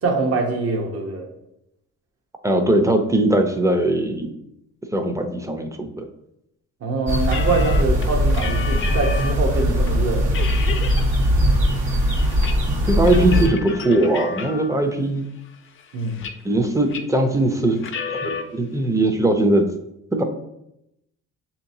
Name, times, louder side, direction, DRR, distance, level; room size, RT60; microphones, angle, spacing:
voice 1, 0.0-1.3 6.8-10.3 15.9-16.2, right 3 dB, 50° right, 1 dB, 1.0 m, -24 dB
voice 2, 2.4-4.3 4.9-6.1 12.9-15.3 16.4-19.6 20.1-20.2, right 1 dB, 10° right, 5 dB, 0.5 m, -20 dB
sound 1, 7.1-13.5, equal, 80° right, 1.4 m, -20 dB
sound 2, 7.2-9.5 9.9-10.0 10.3-11.1 11.4-12.6 12.8-14.9 15.4-16.6 16.9-17.2 17.7-18.4, left 5 dB, 45° left, 0.5 m, -32 dB
6.5 x 2.9 x 2.7 m, 0.83 s
cardioid pair, 90°, 30 cm